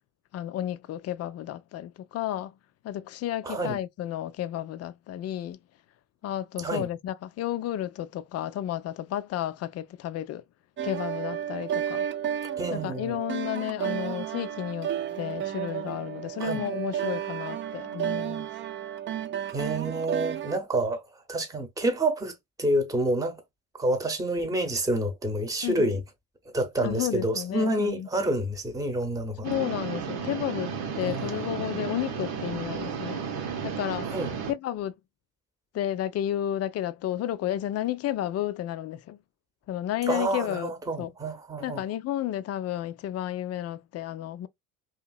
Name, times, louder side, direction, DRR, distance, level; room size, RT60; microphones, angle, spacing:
voice 1, 0.3-2.5 2.8-5.6 6.2-10.4 10.8-12.0 12.7-14.9 15.2-18.5 25.6-25.9 26.8-28.1 29.4-33.2 33.6-34.1 34.5-34.9 35.7-39.2 39.7-40.7 41.0-41.1 41.6-44.5, left 12 dB, 35° left, 0.4 m, -32 dB
voice 2, 3.4-3.8 6.6-6.9 12.6-13.1 16.4-16.6 19.5-22.3 22.6-23.4 23.7-26.0 26.5-29.5 31.0-31.3 34.0-34.3 40.1-41.8, right 1 dB, 10° right, 0.9 m, -28 dB
sound 1, 10.8-20.6, right 10 dB, 30° right, 0.4 m, -32 dB
sound 2, 29.4-34.5, right 6 dB, 55° right, 1.0 m, -33 dB
2.8 x 2.8 x 2.3 m
hypercardioid pair, 60°, 44 cm